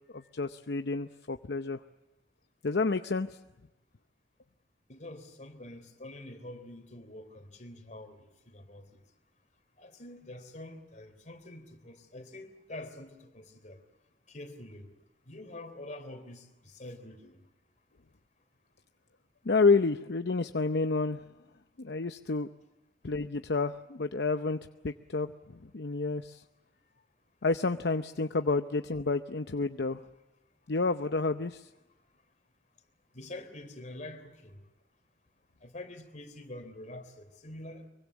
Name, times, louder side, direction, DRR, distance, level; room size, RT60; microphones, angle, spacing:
voice 1, 0.1-1.8 2.6-3.4 19.4-21.2 21.8-22.5 23.0-24.6 24.8-26.4 27.4-30.0 30.7-31.7, left 3 dB, 65° left, 0.8 m, -29 dB
voice 2, 4.9-8.2 8.5-9.0 9.8-13.8 14.3-14.9 15.3-17.4 33.1-34.6 35.6-37.8, left 1 dB, 45° left, 3.5 m, -46 dB
25.0 x 23.5 x 7.4 m
head